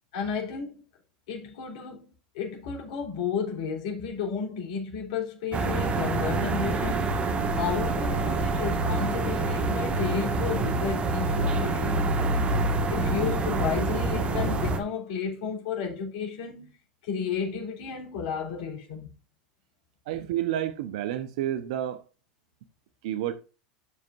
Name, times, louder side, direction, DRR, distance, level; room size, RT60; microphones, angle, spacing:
voice 1, 0.1-0.8 1.3-2.1 2.3-7.1 7.5-12.1 12.9-16.8 17.0-19.1, left 6 dB, 70° left, 3.8 m, -32 dB
sound 1, 5.5-14.8, right 2 dB, 30° right, 1.7 m, -26 dB
voice 2, 20.1-22.0 23.0-23.3, right 12 dB, 65° right, 1.0 m, -30 dB
12.5 x 5.2 x 2.6 m
hypercardioid pair, 95°, 4 cm